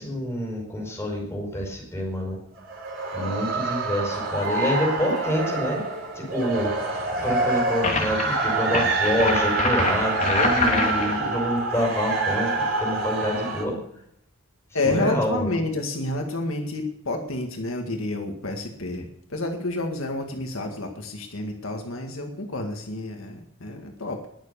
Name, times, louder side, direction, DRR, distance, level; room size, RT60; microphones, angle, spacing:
voice 1, 0.0-2.4 3.1-5.8 6.1-13.8 14.7-15.5, equal, 10° left, -1 dB, 5.4 m, -27 dB
sound 1, 2.6-13.6, right 3 dB, 60° right, 4.2 m, -26 dB
sound 2, 7.8-8.2 8.7-11.2, left 3 dB, 35° left, 2.8 m, -25 dB
voice 2, 14.7-24.3, left 2 dB, 70° left, 3 dB, 1.9 m, -29 dB
20.5 x 7.3 x 6.9 m, 0.72 s
head